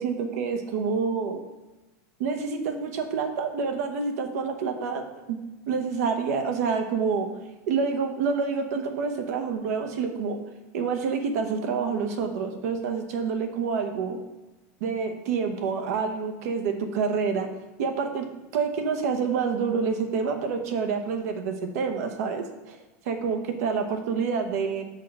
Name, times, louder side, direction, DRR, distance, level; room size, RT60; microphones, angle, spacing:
voice 1, 0.0-1.4 2.2-5.4 5.7-7.3 7.7-10.4 10.7-14.2 14.8-17.5 17.8-22.8 23.0-24.8, right 5 dB, 70° right, 6 dB, 1.1 m, -28 dB
5.5 x 4.2 x 6.1 m, 1.1 s
supercardioid pair, 155°, 9 cm